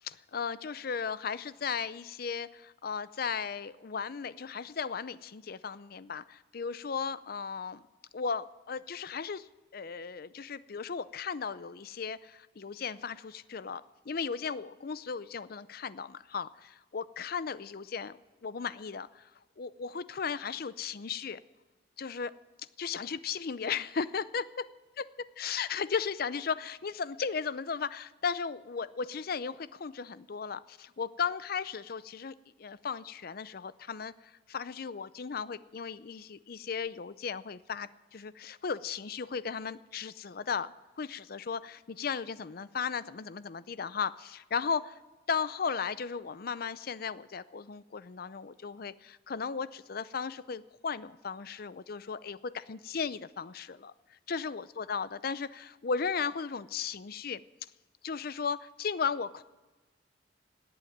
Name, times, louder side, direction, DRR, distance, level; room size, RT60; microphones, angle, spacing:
voice 1, 0.0-7.9 8.1-19.3 19.6-21.4 22.0-22.3 22.8-24.7 25.0-25.1 25.4-45.0 45.3-57.4 58.0-59.4, left 6 dB, 55° left, 16 dB, 0.5 m, -36 dB
18.0 x 8.7 x 9.3 m, 1.2 s
head